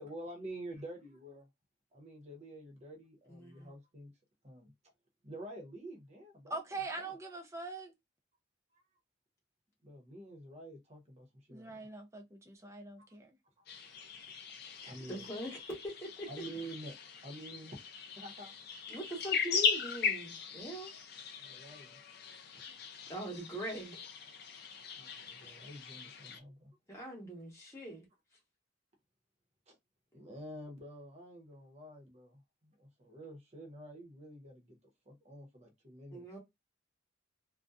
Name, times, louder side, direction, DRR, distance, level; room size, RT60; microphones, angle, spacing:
voice 1, 0.0-1.5 1.9-4.1 4.4-4.7 5.2-6.6 7.0-7.1 8.7-8.8 9.8-11.9 14.8-15.3 16.3-16.9 17.2-17.8 18.2-18.5 21.4-22.0 22.5-22.6 25.0-26.8 29.7-29.8 30.1-34.8 35.1-36.2, right 1 dB, 35° right, 0.8 m, -48 dB
voice 2, 3.3-3.7 14.8-16.3 18.9-20.9 23.1-24.1 26.9-28.1 36.1-36.4, right 1 dB, 15° left, 1.0 m, -42 dB
voice 3, 6.5-7.9 11.5-13.3, right 3 dB, 15° right, 0.4 m, -43 dB
sound 1, 13.7-26.4, left 6 dB, 55° left, 0.4 m, -39 dB
2.6 x 2.2 x 2.3 m
head